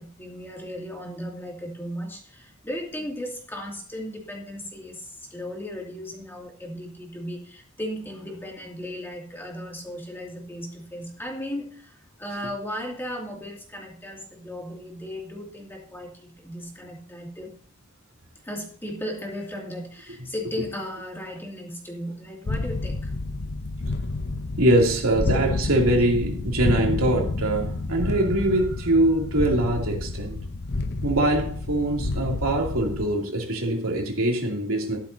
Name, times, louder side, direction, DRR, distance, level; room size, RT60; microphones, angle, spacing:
voice 1, 0.0-17.5 18.4-23.1, equal, 10° left, 2.4 m, -36 dB
sound 1, 22.5-33.1, left 2 dB, 50° left, 0.7 m, -29 dB
voice 2, 24.6-30.4 31.0-35.0, right 1 dB, 80° right, 2.8 m, -23 dB
13.0 x 11.5 x 2.7 m
head